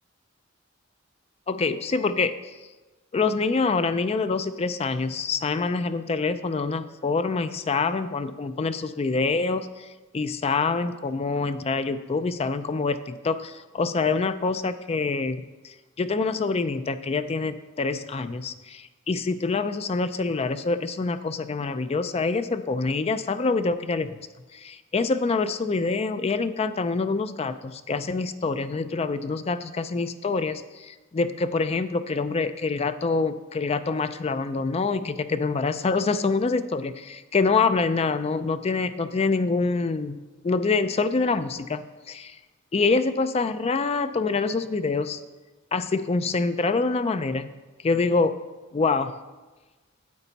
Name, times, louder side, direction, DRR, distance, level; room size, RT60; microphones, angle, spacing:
voice 1, 1.5-2.3 3.1-9.9 10.1-24.2 24.5-42.4 42.7-45.2 45.7-47.5 47.8-48.3 48.7-49.1, left 4 dB, 30° left, 11 dB, 0.4 m, -26 dB
9.8 x 8.2 x 4.1 m, 1.2 s
head